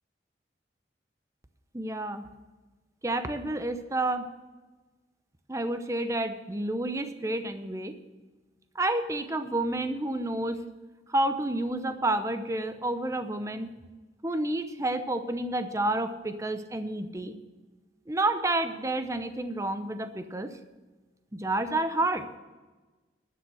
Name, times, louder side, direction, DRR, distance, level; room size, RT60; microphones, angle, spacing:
voice 1, 1.7-2.2 3.0-4.3 5.5-7.9 8.7-10.6 11.1-13.7 14.2-17.3 18.1-20.5 21.3-22.3, right 2 dB, 15° right, 9 dB, 0.7 m, -29 dB
12.5 x 6.9 x 7.6 m, 1.2 s
head